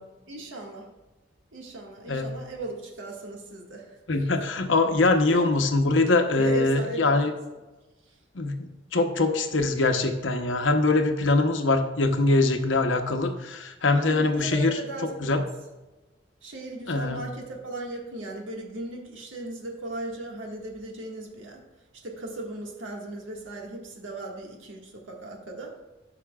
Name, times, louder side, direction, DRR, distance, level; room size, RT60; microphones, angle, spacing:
voice 1, 0.3-0.9 1.5-4.0 5.3-5.5 6.4-7.3 13.9-15.4 16.4-21.6 22.0-25.7, right 2 dB, 90° right, -1 dB, 1.7 m, -37 dB
voice 2, 4.1-7.3 8.3-14.8 15.2-15.4 16.9-17.2, left 2 dB, 80° left, 6 dB, 0.9 m, -23 dB
13.5 x 6.0 x 2.4 m, 1.1 s
head